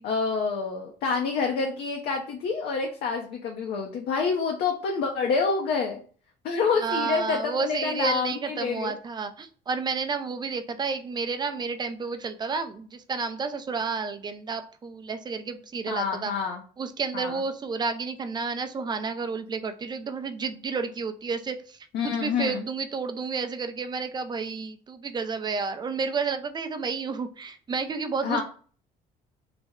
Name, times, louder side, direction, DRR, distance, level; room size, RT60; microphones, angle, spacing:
voice 1, 0.0-6.0 6.4-8.9 15.9-16.6 17.1-17.4 21.9-22.6 28.2-28.4, left 5 dB, 65° left, 2 dB, 0.6 m, -27 dB
voice 2, 6.8-16.3 16.8-21.8 22.0-28.4, right 5 dB, 25° right, 9 dB, 0.4 m, -31 dB
3.3 x 2.1 x 3.5 m, 0.42 s
cardioid pair, 110°, 17 cm